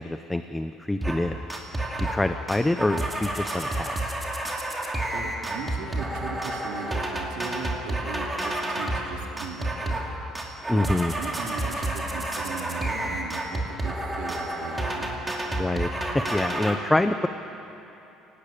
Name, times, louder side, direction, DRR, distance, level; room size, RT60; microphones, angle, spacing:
voice 1, 0.0-1.4 2.1-4.1 10.7-11.1 15.6-15.9 16.1-17.3, left 1 dB, 5° left, 9 dB, 0.6 m, -26 dB
sound 1, 1.0-1.2 1.5-2.2 2.5-9.1 9.4-10.1 10.3-16.7, right 1 dB, 10° right, 2.4 m, -30 dB
voice 2, 5.1-10.1 10.7-15.2, right 6 dB, 80° right, 2 dB, 2.8 m, -38 dB
27.5 x 18.5 x 8.7 m, 3.0 s
cardioid pair, 165°, 0 cm